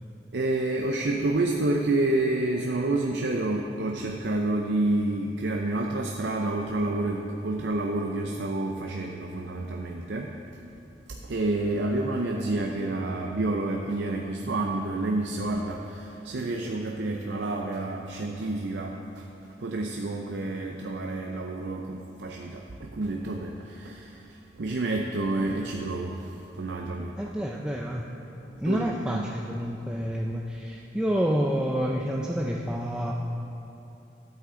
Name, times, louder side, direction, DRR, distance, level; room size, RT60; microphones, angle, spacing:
voice 1, 0.3-10.7 11.1-19.3 19.6-27.2 28.6-29.3, right 2 dB, 80° right, 1 dB, 0.6 m, -29 dB
voice 2, 27.2-28.1 28.6-33.1, equal, 5° right, -2 dB, 0.4 m, -28 dB
12.5 x 8.4 x 3.8 m, 2.9 s
head